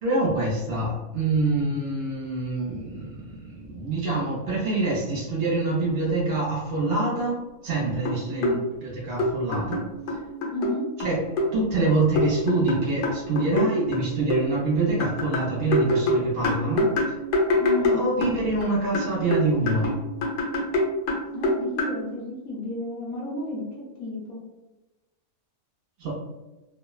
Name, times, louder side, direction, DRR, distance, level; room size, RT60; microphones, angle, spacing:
voice 1, 0.0-8.5 8.8-9.8 11.0-11.2 11.5-17.2 17.8-19.9 26.0-26.1, right 2 dB, 65° right, -6 dB, 0.6 m, -26 dB
sound 1, 7.8-7.9 8.0-8.6 9.2-10.7 11.0-11.5 12.2-14.4 15.0-18.7 18.9-22.0, left 2 dB, 90° left, 1.2 m, -25 dB
voice 2, 10.5-10.9 17.6-18.0 21.3-23.6 24.0-24.4, left 1 dB, 70° left, -3 dB, 1.2 m, -32 dB
3.2 x 2.0 x 2.2 m, 1.1 s
omnidirectional pair, 1.7 m